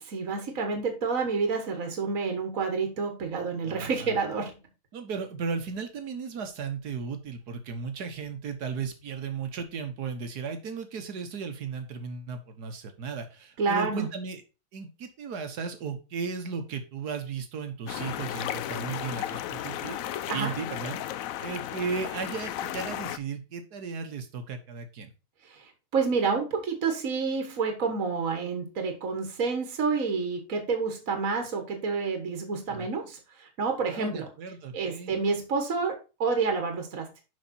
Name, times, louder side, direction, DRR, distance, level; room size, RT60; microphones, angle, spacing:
voice 1, 0.1-4.6 13.6-14.1 20.3-20.5 25.5-34.3 34.7-37.2, right 4 dB, 55° right, 4 dB, 1.8 m, -29 dB
voice 2, 3.6-4.2 4.9-14.4 14.7-21.0 21.4-25.1 32.7-32.9 33.9-35.1, right 5 dB, 80° right, 7 dB, 1.8 m, -35 dB
sound 1, 17.9-23.2, left 12 dB, 70° left, 0.9 m, -34 dB
6.5 x 5.8 x 4.2 m, 0.30 s
omnidirectional pair, 1.7 m